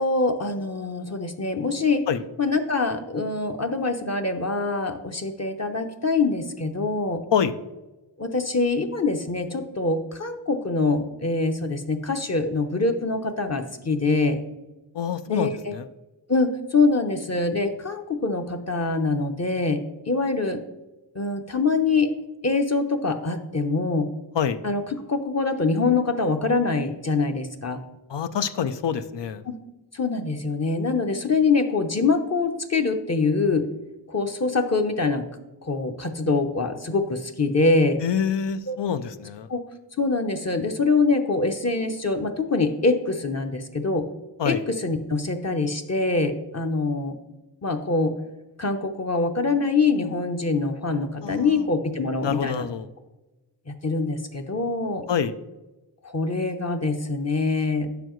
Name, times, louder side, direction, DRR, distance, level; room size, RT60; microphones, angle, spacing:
voice 1, 0.0-2.0 2.4-7.2 8.2-14.4 15.3-15.5 16.3-20.6 21.1-22.1 22.4-24.1 24.6-24.8 25.1-27.8 29.5-29.6 29.9-33.7 34.1-35.3 35.6-38.0 38.7-38.8 39.5-39.6 40.0-44.1 44.4-44.6 44.8-47.2 47.6-48.1 48.6-52.6 53.7-55.0 56.0-58.0, left 3 dB, 35° left, 4 dB, 0.8 m, -24 dB
voice 2, 14.9-15.9 24.3-24.6 28.1-29.4 38.0-39.5 44.4-44.6 51.2-51.6 52.2-52.9 55.1-55.3, left 7 dB, 70° left, 11 dB, 0.6 m, -26 dB
8.9 x 6.9 x 3.1 m, 1.1 s
wide cardioid pair, 70°, 44 cm